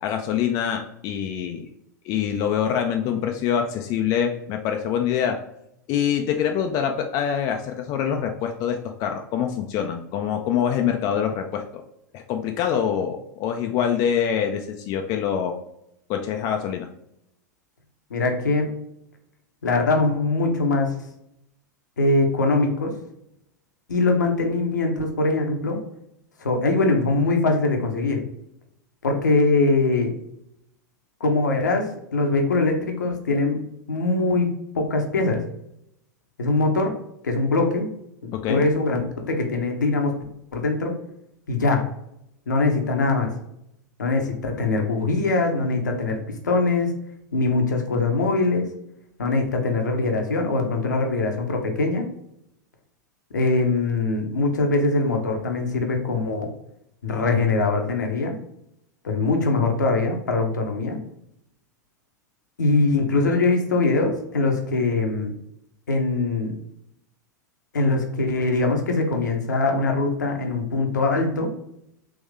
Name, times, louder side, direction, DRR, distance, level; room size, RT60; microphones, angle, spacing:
voice 1, 0.0-1.7 2.0-5.4 5.9-11.6 12.1-15.6 16.1-16.9 38.3-38.7, left 8 dB, 40° left, 4 dB, 0.4 m, -25 dB
voice 2, 18.1-18.7 19.6-20.9 22.0-22.9 23.9-25.8 26.4-28.2 29.0-30.1 31.2-31.9 32.1-33.6 33.9-35.4 36.4-36.9 37.2-37.9 38.2-40.2 40.5-40.9 41.5-41.8 42.5-43.3 44.0-46.2 46.4-46.9 47.3-48.7 49.2-52.1 53.3-56.5 57.0-58.4 59.0-61.0 62.6-65.3 65.9-66.5 67.7-71.5, left 3 dB, 75° left, 3 dB, 0.8 m, -22 dB
3.6 x 3.0 x 3.4 m, 0.78 s
figure-of-eight pair, 90°, 10 cm